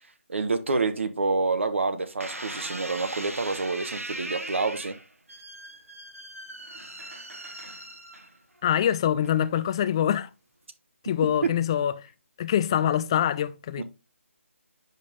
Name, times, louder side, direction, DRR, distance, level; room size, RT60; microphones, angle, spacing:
voice 1, 0.3-4.9 13.8-13.9, right 3 dB, 65° right, 0.9 m, -27 dB
sound 1, 2.2-8.6 9.2-9.7, right 1 dB, 90° right, 1.3 m, -39 dB
voice 2, 8.6-10.3 11.0-11.9 12.4-13.8, left 10 dB, 20° left, 0.3 m, -24 dB
9.2 x 5.3 x 2.5 m
figure-of-eight pair, 155°, 7 cm